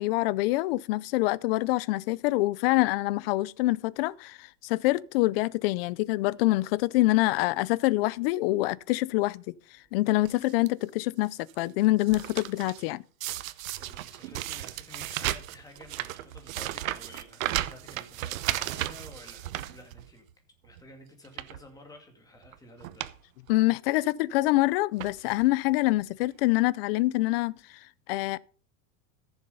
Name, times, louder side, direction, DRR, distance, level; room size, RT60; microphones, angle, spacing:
voice 1, 0.0-9.5 9.9-11.3 11.6-13.0 23.5-27.5 28.1-28.4, left 19 dB, 45° left, 0.5 m, -25 dB
sound 1, 10.2-10.7 11.2-11.6 11.8-12.8 13.2-20.3 20.7-20.8 21.2-21.6 22.4-22.5 22.8-23.2 23.5-23.6 24.5-24.6 25.0-25.5 26.2-26.3 26.5-26.6, right 14 dB, 80° right, 1.0 m, -35 dB
voice 2, 13.8-20.3 20.6-23.1, left 1 dB, 10° left, 2.2 m, -51 dB
14.5 x 7.1 x 5.4 m
supercardioid pair, 160°, 40 cm